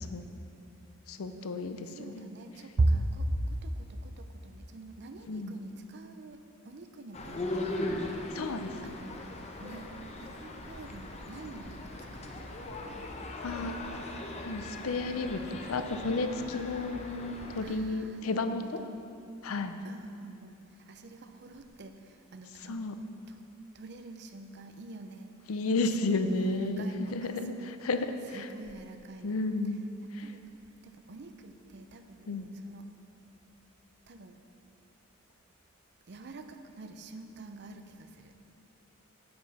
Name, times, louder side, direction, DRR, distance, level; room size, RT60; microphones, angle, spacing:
voice 1, 1.1-2.3 5.3-5.6 8.3-8.7 13.4-13.8 14.4-18.8 19.4-19.8 22.6-23.0 25.5-27.5 27.8-28.5 29.2-29.8 30.1-30.3 32.3-32.5, left 3 dB, 90° left, 9 dB, 0.5 m, -32 dB
voice 2, 1.9-8.5 8.8-12.5 17.6-19.0 19.8-22.8 23.3-23.4 23.7-25.4 26.0-27.7 28.3-29.4 30.0-30.5 30.8-32.9 34.1-34.4 36.1-38.5, right 2 dB, 55° right, 7 dB, 0.6 m, -39 dB
sound 1, 7.1-17.6, left 2 dB, 30° left, 0.7 m, -39 dB
9.5 x 7.8 x 4.1 m, 2.7 s
head